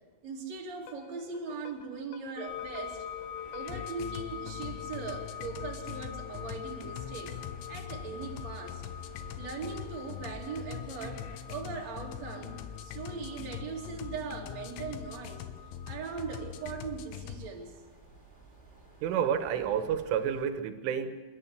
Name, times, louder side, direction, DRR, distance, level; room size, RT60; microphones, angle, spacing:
voice 1, 0.2-3.1 3.5-7.4 7.7-8.8 9.4-15.5 15.9-17.7, right 5 dB, 40° right, 0 dB, 3.2 m, -40 dB
sound 1, 0.8-17.5, left 11 dB, 75° left, 3.1 m, -43 dB
sound 2, 2.4-16.6, left 9 dB, 60° left, 2.1 m, -45 dB
sound 3, 2.5-20.4, right 3 dB, 10° right, 3.9 m, -55 dB
voice 2, 19.0-21.2, right 8 dB, 80° right, 9 dB, 3.7 m, -30 dB
27.0 x 13.5 x 8.1 m, 1.3 s
omnidirectional pair, 5.7 m